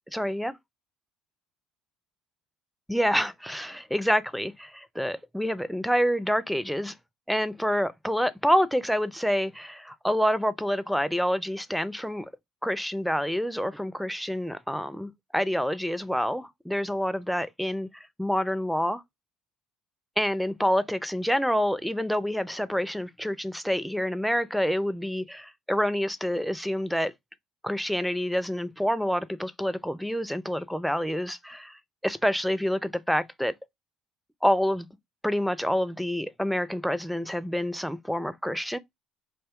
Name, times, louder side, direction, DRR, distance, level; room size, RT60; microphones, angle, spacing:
voice 1, 0.1-0.5 2.9-6.9 7.3-12.3 12.6-19.0 20.2-27.1 27.6-33.5 34.4-34.9 35.2-38.8, equal, ahead, 0.4 m, -27 dB
2.5 x 2.2 x 3.5 m
hypercardioid pair, 70°, 0 cm